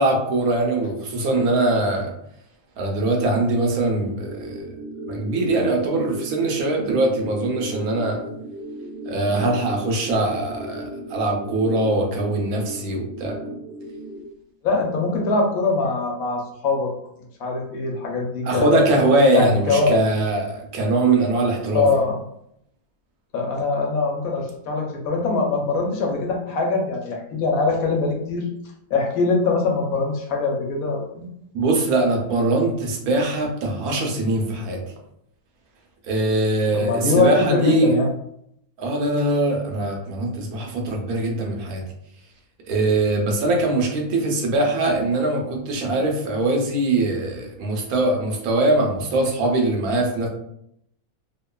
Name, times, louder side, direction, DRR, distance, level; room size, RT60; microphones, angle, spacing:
voice 1, 0.0-2.1 2.8-4.7 5.1-8.2 9.1-13.4 18.4-21.9 31.5-34.8 36.0-37.9 38.8-41.8 42.7-50.3, right 2 dB, 80° right, 1 dB, 1.1 m, -22 dB
sound 1, 4.2-14.2, right 1 dB, 45° right, 0.9 m, -36 dB
voice 2, 14.6-16.9 17.4-18.8 19.3-20.0 21.7-22.2 23.3-28.4 28.9-31.3 36.7-38.1, left 3 dB, 75° left, 0 dB, 1.0 m, -22 dB
2.9 x 2.2 x 2.2 m, 0.73 s
omnidirectional pair, 1.6 m